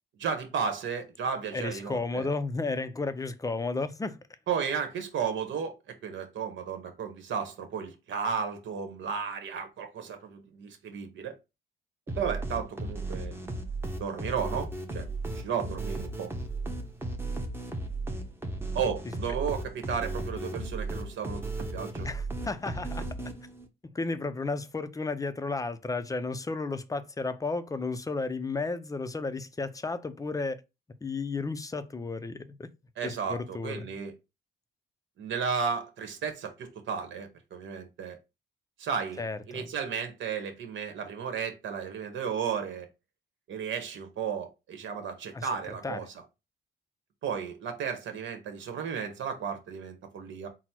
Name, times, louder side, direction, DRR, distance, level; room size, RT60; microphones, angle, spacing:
voice 1, 0.2-2.3 4.5-5.7 6.0-11.3 12.2-13.4 14.0-15.0 15.3-16.3 18.7-22.1 33.0-34.1 35.2-38.2 38.8-42.9 43.5-46.1 47.2-50.5, right 6 dB, 70° right, 1.1 m, -34 dB
voice 2, 1.5-4.2 22.0-23.1 23.9-30.6 31.0-32.7 33.0-33.9 39.2-39.7 45.3-45.5 45.8-46.1, left 3 dB, 15° left, 0.5 m, -33 dB
sound 1, 12.1-23.7, right 2 dB, 10° right, 0.9 m, -35 dB
4.0 x 2.1 x 4.3 m
cardioid pair, 90°, 20 cm